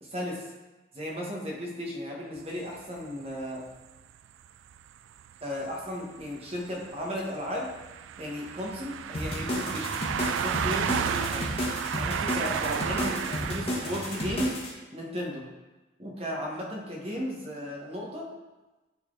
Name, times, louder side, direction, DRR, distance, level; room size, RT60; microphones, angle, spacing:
voice 1, 0.0-0.5 0.9-3.7 5.4-7.7 8.2-10.0 10.3-11.5 11.9-14.6 14.9-15.5 16.0-18.3, left 1 dB, 30° right, -2 dB, 1.4 m, -35 dB
sound 1, 2.4-2.5 4.0-4.1 4.7-4.9 5.2-5.3 5.6-14.4, right 8 dB, 85° right, 0.3 m, -33 dB
sound 2, 9.1-14.7, left 1 dB, 30° left, 1.5 m, -32 dB
9.6 x 4.1 x 3.9 m, 1.1 s
head